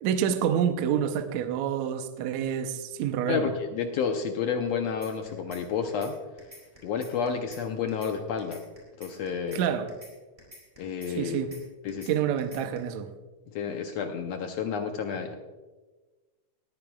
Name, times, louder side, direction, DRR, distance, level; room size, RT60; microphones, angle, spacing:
voice 1, 0.0-3.5 9.5-9.9 11.1-11.5 12.1-13.1, right 9 dB, 75° right, 1.9 m, -28 dB
voice 2, 3.3-6.1 6.8-8.6 9.0-9.6 10.8-11.4 11.8-12.2 13.5-15.4, left 6 dB, 70° left, 1.7 m, -30 dB
sound 1, 5.0-5.6 5.9-6.1 6.4-7.6 7.9-8.1 8.4-9.6 9.9-10.1 10.4-11.6 11.9-12.1 12.4-12.8, equal, 15° right, 3.9 m, -48 dB
19.0 x 14.0 x 2.3 m
omnidirectional pair, 3.7 m